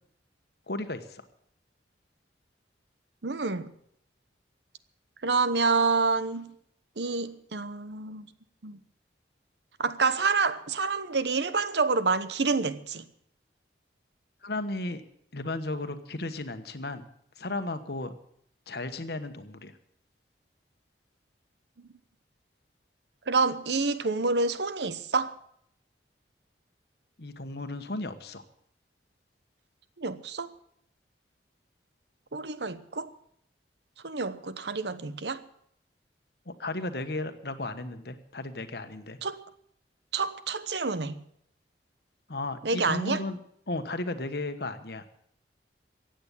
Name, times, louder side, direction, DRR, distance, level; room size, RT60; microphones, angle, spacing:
voice 1, 0.7-1.2 14.4-15.0 15.3-17.1 17.4-18.1 18.7-19.7 27.2-28.4 36.5-39.2 42.3-43.4 43.7-45.0, left 2 dB, 60° left, 1.2 m, -34 dB
voice 2, 3.2-3.7 5.2-6.5 7.0-8.3 8.6-8.8 9.8-13.0 23.3-25.3 30.0-30.5 32.3-33.1 34.0-35.4 39.2-39.4 40.1-41.2 42.6-43.2, right 4 dB, 70° right, 0.9 m, -28 dB
15.5 x 8.9 x 8.4 m
head